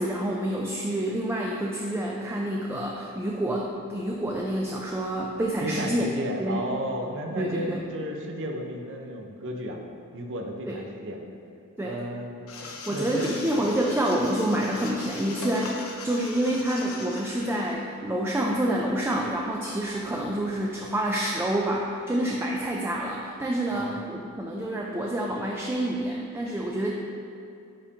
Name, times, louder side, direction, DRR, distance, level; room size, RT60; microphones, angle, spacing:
voice 1, 0.0-6.1 6.4-6.6 7.3-7.8 10.7-10.8 11.8-12.0 12.9-26.9, right 1 dB, 10° right, -2 dB, 0.3 m, -28 dB
voice 2, 5.6-9.8 10.1-11.2 11.8-12.3 12.9-13.6 23.7-24.0, right 1 dB, 60° right, 2 dB, 0.6 m, -33 dB
sound 1, 12.5-17.7, left 4 dB, 70° left, 0.7 m, -40 dB
9.8 x 3.5 x 2.8 m, 2.5 s
head